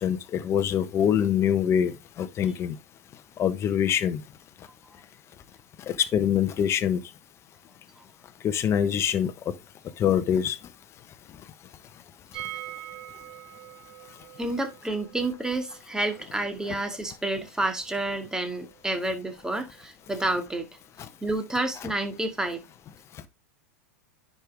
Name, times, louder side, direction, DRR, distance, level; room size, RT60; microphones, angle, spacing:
voice 1, 0.0-2.8 3.4-4.2 5.9-7.0 8.4-9.3 10.0-10.6, left 9 dB, 35° left, 1.2 m, -24 dB
sound 1, 12.3-18.1 18.4-18.5 18.7-18.8, right 14 dB, 55° right, 2.9 m, -44 dB
voice 2, 14.4-20.7 21.2-22.6, right 2 dB, 5° right, 2.1 m, -29 dB
10.0 x 5.5 x 3.4 m
hypercardioid pair, 100°, 8 cm